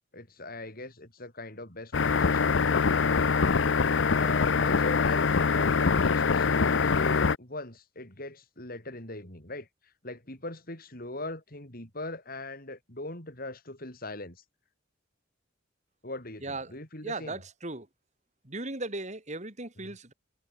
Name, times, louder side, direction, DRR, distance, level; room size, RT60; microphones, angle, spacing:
voice 1, 0.1-3.5 4.1-9.7 10.0-14.4 16.0-17.4 19.8-19.9, left 2 dB, 50° left, 6.5 m, -40 dB
sound 1, 1.9-7.3, left 5 dB, 75° left, 0.7 m, -24 dB
voice 2, 16.4-16.8 17.0-17.9 18.4-20.1, right 2 dB, 40° right, 4.2 m, -37 dB
head